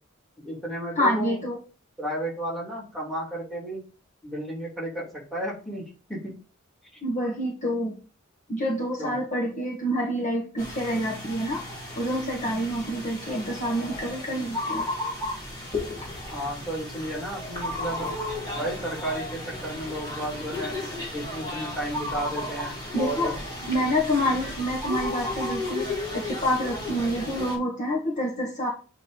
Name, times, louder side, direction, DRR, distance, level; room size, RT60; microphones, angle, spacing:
voice 1, 0.4-1.3 2.0-3.8 4.2-5.8 6.1-6.3 9.0-9.2 16.3-18.1 18.5-20.8 21.1-23.4, right 1 dB, ahead, -3 dB, 3.0 m, -33 dB
voice 2, 1.0-1.6 7.0-8.0 8.5-14.9 22.9-23.3 23.6-28.7, equal, 35° left, -1 dB, 1.5 m, -27 dB
sound 1, 10.6-27.5, left 2 dB, 20° left, 4.4 m, -34 dB
8.0 x 4.0 x 5.1 m, 0.36 s
head